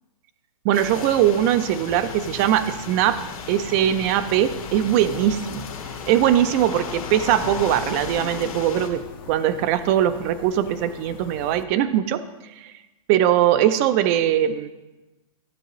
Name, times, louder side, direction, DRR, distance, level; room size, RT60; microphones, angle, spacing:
voice 1, 0.6-3.2 3.5-5.7 6.1-12.2 12.6-12.7 13.1-14.7, right 11 dB, 25° right, 12 dB, 0.4 m, -21 dB
sound 1, 0.7-8.9, left 5 dB, 70° left, 1.6 m, -35 dB
sound 2, 1.9-11.7, left 8 dB, 40° left, 0.6 m, -42 dB
12.5 x 7.8 x 3.0 m, 1.1 s
hypercardioid pair, 150°, 18 cm